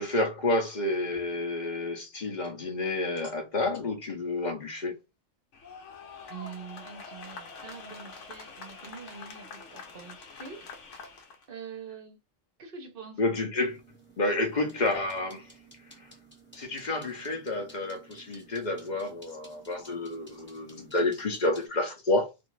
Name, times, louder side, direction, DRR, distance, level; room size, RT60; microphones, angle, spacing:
voice 1, 0.0-4.9 13.2-13.8 14.2-15.5 15.9-16.1 16.5-22.3, left 2 dB, 45° left, 0.7 m, -30 dB
sound 1, 5.5-11.5, left 4 dB, 75° left, 0.9 m, -45 dB
voice 2, 6.3-10.7 11.5-12.2 12.6-13.2, right 6 dB, 50° right, 0.8 m, -44 dB
sound 2, 13.6-21.7, right 2 dB, 10° left, 0.8 m, -55 dB
2.5 x 2.4 x 3.0 m
omnidirectional pair, 1.3 m